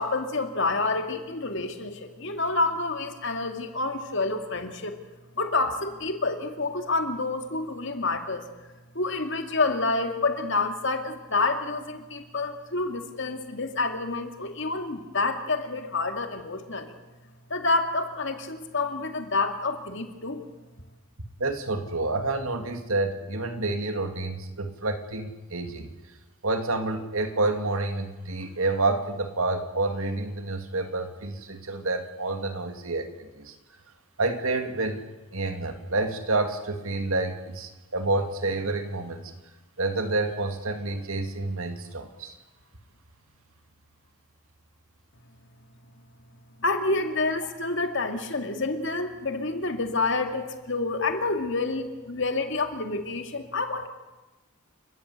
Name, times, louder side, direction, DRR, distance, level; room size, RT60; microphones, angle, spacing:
voice 1, 0.0-5.0 5.4-8.4 8.9-16.9 17.5-20.4 46.6-53.9, left 3 dB, 55° left, 6 dB, 2.2 m, -28 dB
voice 2, 21.4-25.9 26.4-33.5 34.2-35.0 35.3-39.3 39.8-42.4, right 2 dB, 75° right, 7 dB, 2.4 m, -29 dB
29.5 x 14.0 x 8.2 m, 1.1 s
head